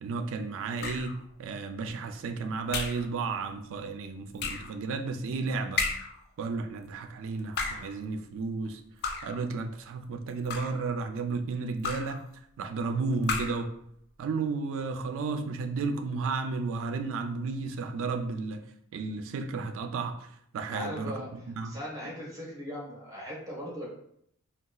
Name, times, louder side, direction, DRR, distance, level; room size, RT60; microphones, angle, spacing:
voice 1, 0.0-5.9 6.4-8.8 9.2-12.2 12.6-13.7 14.2-18.6 18.9-21.8, right 4 dB, 60° right, 0.3 m, -33 dB
sound 1, 0.8-1.2 2.7-3.1 4.4-4.7 5.8-6.2 7.4-7.9 9.0-9.4 10.3-10.9 11.8-12.2 13.2-13.7, left 4 dB, 45° left, 0.3 m, -33 dB
voice 2, 20.7-21.3 21.6-23.8, equal, 15° right, 1.0 m, -38 dB
3.8 x 2.3 x 2.3 m
head